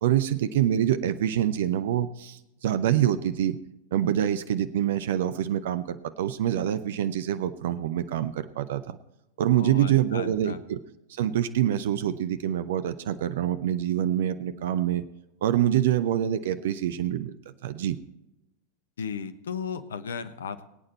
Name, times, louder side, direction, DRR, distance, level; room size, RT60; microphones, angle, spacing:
voice 1, 0.0-3.6 3.9-9.0 9.4-10.8 11.1-15.0 15.4-17.4 17.6-18.0, right 11 dB, 55° right, 12 dB, 0.7 m, -26 dB
voice 2, 9.6-10.6 19.0-20.7, left 6 dB, 65° left, 13 dB, 1.0 m, -35 dB
21.5 x 8.8 x 4.1 m, 0.91 s
figure-of-eight pair, 90°, 0 cm